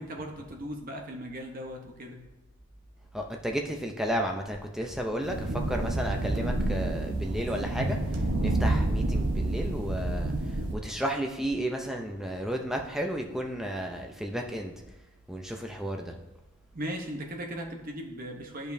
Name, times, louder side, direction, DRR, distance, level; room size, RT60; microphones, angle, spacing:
voice 1, 0.0-2.2 16.7-18.7, equal, 40° right, 2 dB, 0.9 m, -38 dB
voice 2, 3.1-14.7 15.3-16.1, equal, ahead, 2 dB, 0.5 m, -33 dB
sound 1, 5.2-10.7, right 2 dB, 85° right, 1.0 m, -29 dB
10.5 x 5.1 x 2.7 m, 1.0 s
head